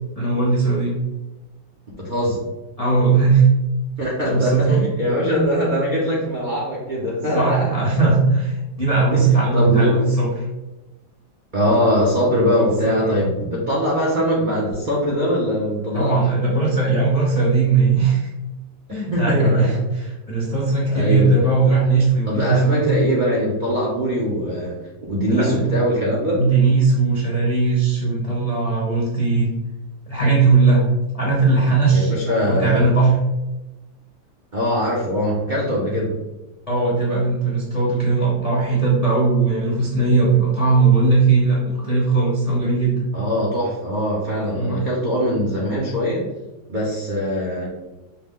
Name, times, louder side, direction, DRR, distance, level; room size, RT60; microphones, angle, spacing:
voice 1, 0.2-0.9 2.8-3.5 4.3-4.8 7.3-10.3 12.4-13.3 15.9-18.3 18.9-23.0 25.3-25.6 26.3-29.5 30.1-32.1 32.5-33.2 36.7-43.0 44.5-44.8, right 4 dB, 60° left, -5 dB, 0.3 m, -18 dB
voice 2, 1.9-2.4 4.0-7.7 8.0-8.1 9.1-9.2 9.5-10.1 11.5-16.2 19.1-19.7 20.9-21.6 22.2-24.8 25.1-26.4 31.9-32.9 34.5-36.2 43.1-46.2 46.7-47.7, equal, 75° right, -5 dB, 0.4 m, -22 dB
5.7 x 2.2 x 3.6 m, 1.0 s
omnidirectional pair, 2.1 m